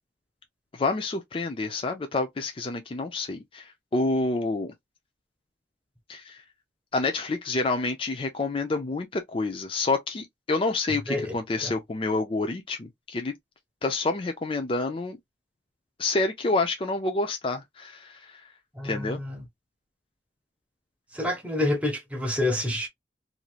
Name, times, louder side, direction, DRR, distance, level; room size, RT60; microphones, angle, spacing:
voice 1, 0.7-4.7 6.1-6.4 6.9-13.3 13.8-15.2 16.0-18.4 18.8-19.2, left 3 dB, 30° left, 0.4 m, -28 dB
voice 2, 10.9-11.3 11.6-11.8 18.8-19.4 21.1-22.9, left 1 dB, 10° right, 0.8 m, -28 dB
3.1 x 2.7 x 2.3 m
head